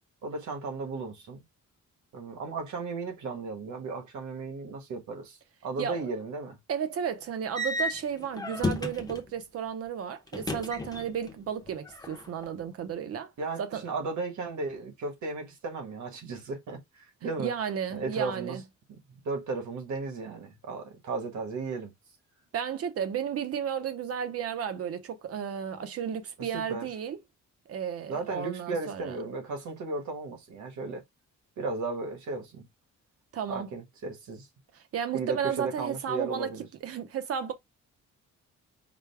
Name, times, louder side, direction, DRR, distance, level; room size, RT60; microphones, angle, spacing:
voice 1, 0.2-1.4 2.1-6.6 13.4-17.5 17.9-18.6 19.1-21.9 26.4-26.9 28.1-31.0 31.6-32.7 33.5-34.5 35.1-36.7, right 3 dB, 70° right, 1.4 m, -35 dB
voice 2, 5.8-6.2 6.7-13.3 13.6-13.8 17.2-18.6 22.5-27.2 27.7-29.2 33.3-33.7 34.9-36.5 36.8-37.5, right 8 dB, 50° right, 0.7 m, -33 dB
sound 1, 7.6-9.3 10.3-11.4 11.6-12.5, left 2 dB, 10° left, 0.7 m, -33 dB
5.0 x 2.2 x 3.4 m
wide cardioid pair, 175°, 30 cm